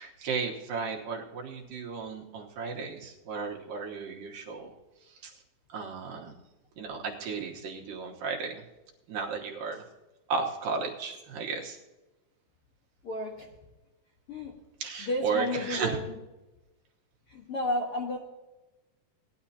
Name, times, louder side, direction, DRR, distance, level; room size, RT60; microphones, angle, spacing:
voice 1, 0.0-4.7 5.2-5.3 5.7-6.3 6.8-8.6 9.1-9.8 10.3-11.8 14.8-16.0, right 5 dB, 70° right, 0 dB, 2.8 m, -34 dB
voice 2, 13.0-13.5 14.3-14.5 15.0-16.2 17.3-18.2, left 1 dB, 55° left, -1 dB, 1.7 m, -32 dB
18.5 x 11.0 x 2.8 m, 1.1 s
omnidirectional pair, 4.2 m